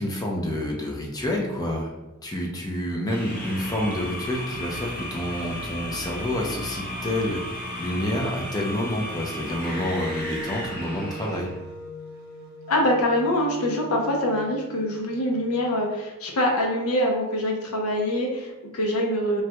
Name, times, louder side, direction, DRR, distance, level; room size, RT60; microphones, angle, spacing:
voice 1, 0.0-1.9 2.2-11.5, left 1 dB, 20° left, -1 dB, 0.5 m, -28 dB
sound 1, 3.1-11.6, equal, 45° left, 0.8 m, -35 dB
Wind instrument woodwind instrument, 9.7-15.7, equal, 45° right, 0.4 m, -40 dB
voice 2, 12.7-19.4, left 1 dB, 90° left, 0 dB, 0.7 m, -24 dB
3.1 x 2.2 x 2.8 m, 1.1 s
head